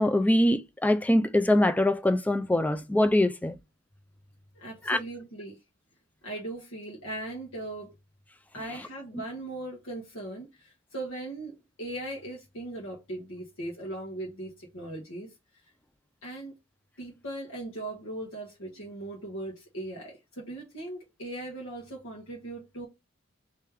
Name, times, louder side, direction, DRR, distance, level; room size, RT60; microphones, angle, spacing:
voice 1, 0.0-3.5 4.9-5.0, left 1 dB, 5° left, 0.3 m, -23 dB
voice 2, 4.5-5.6 6.2-7.9 8.5-15.3 16.2-16.5 17.0-22.9, right 1 dB, 75° left, 1.5 m, -39 dB
3.3 x 3.2 x 3.5 m
head